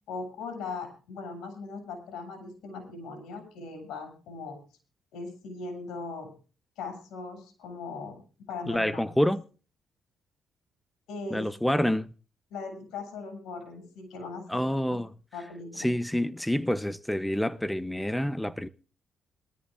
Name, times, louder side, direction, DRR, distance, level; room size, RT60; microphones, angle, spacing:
voice 1, 0.1-4.6 5.1-6.3 6.8-9.0 11.1-11.5 12.5-14.6 14.9-15.0 15.3-15.9, left 4 dB, 85° left, 7.1 m, -39 dB
voice 2, 8.7-9.4 11.3-12.1 14.5-15.1 15.8-18.7, equal, 5° left, 0.7 m, -27 dB
22.5 x 13.5 x 2.5 m
cardioid pair, 90°, 0 cm